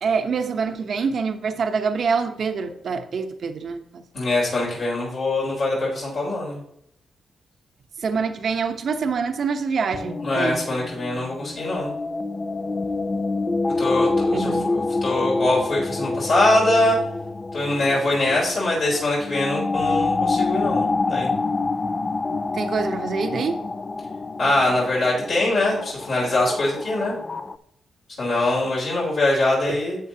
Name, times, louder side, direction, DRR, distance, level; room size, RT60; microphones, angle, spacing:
voice 1, 0.0-4.0 8.0-10.6 14.3-14.7 22.5-23.6, right 5 dB, 65° right, 7 dB, 0.9 m, -25 dB
voice 2, 4.1-6.6 10.2-11.9 13.8-17.0 17.5-21.3 24.4-27.2 28.2-30.0, left 2 dB, 70° left, -6 dB, 4.1 m, -23 dB
sound 1, 9.9-27.6, left 3 dB, 35° left, 0.4 m, -27 dB
11.0 x 7.8 x 2.9 m, 0.75 s
cardioid pair, 75°, 0 cm